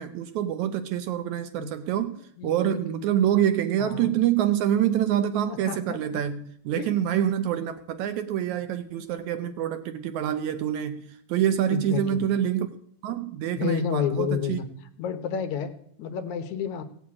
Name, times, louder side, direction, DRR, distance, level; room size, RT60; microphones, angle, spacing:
voice 1, 0.0-2.2 2.4-12.7 13.0-14.6, right 10 dB, 75° right, 10 dB, 1.9 m, -26 dB
voice 2, 2.4-3.0 3.8-4.1 5.5-6.2 6.7-6.9 11.7-12.3 13.5-14.7 15.0-16.8, left 7 dB, 70° left, 9 dB, 2.2 m, -31 dB
17.0 x 6.9 x 8.6 m, 0.68 s
omnidirectional pair, 3.8 m